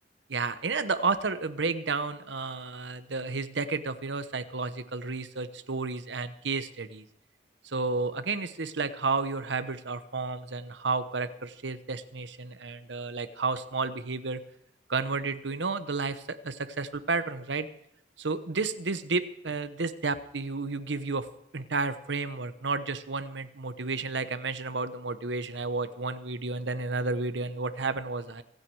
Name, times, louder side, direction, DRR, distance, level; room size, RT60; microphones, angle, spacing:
voice 1, 0.3-7.0 7.6-14.4 14.9-17.7 18.2-21.3 21.5-28.4, right 3 dB, 80° right, 11 dB, 1.0 m, -31 dB
26.0 x 9.3 x 4.7 m, 0.74 s
head